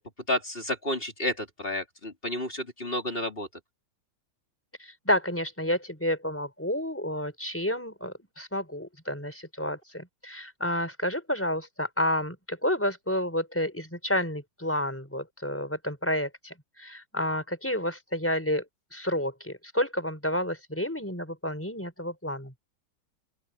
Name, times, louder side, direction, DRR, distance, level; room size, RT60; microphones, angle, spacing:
voice 1, 0.3-3.5, left 1 dB, 25° left, 3.9 m, -31 dB
voice 2, 4.8-18.6 18.9-22.5, left 1 dB, 5° left, 4.5 m, -30 dB
open air
omnidirectional pair, 2.3 m